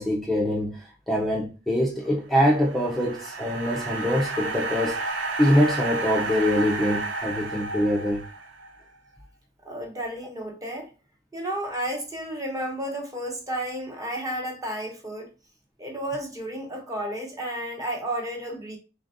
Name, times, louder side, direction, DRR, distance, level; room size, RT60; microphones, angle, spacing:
voice 1, 0.0-8.2, equal, ahead, 0.5 m, -24 dB
sound 1, 2.4-8.7, right 3 dB, 90° right, 0.6 m, -31 dB
voice 2, 9.6-10.9 11.3-15.3 15.8-18.8, right 1 dB, 20° right, 1.0 m, -32 dB
3.9 x 3.3 x 2.5 m
head